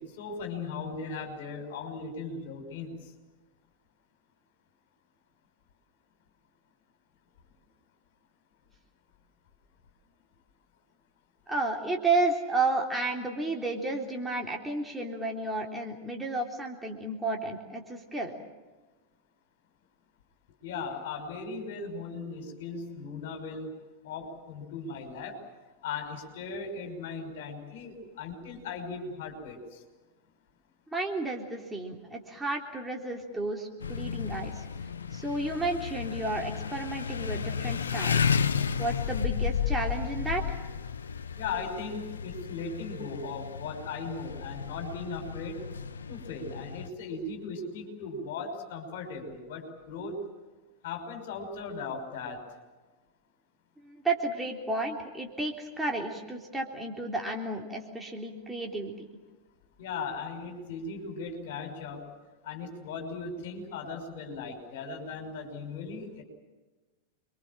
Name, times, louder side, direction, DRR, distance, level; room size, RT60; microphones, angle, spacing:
voice 1, 0.0-3.1 20.6-23.7 24.0-25.4 25.8-29.8 41.4-45.6 46.1-50.2 50.8-52.4 59.8-62.1 62.4-66.2, left 4 dB, 55° left, 4 dB, 5.9 m, -38 dB
voice 2, 11.5-18.3 30.9-34.7 35.1-38.3 38.8-40.6 53.8-59.1, right 2 dB, 10° right, 1 dB, 3.6 m, -32 dB
sound 1, 33.8-46.9, left 6 dB, 70° left, 1.0 m, -33 dB
28.5 x 23.5 x 7.5 m, 1.2 s
figure-of-eight pair, 90°, 0 cm